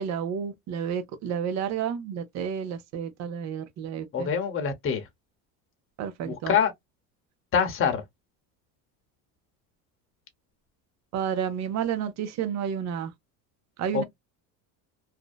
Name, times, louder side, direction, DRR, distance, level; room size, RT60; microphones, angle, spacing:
voice 1, 0.0-4.3 6.0-6.6 11.1-13.1 13.8-14.0, right 8 dB, 45° right, 0.6 m, -31 dB
voice 2, 4.1-5.1 6.2-6.7 7.5-8.0 13.9-14.0, left 7 dB, 30° left, 0.8 m, -25 dB
2.6 x 2.1 x 2.3 m
supercardioid pair, 115°, 40 cm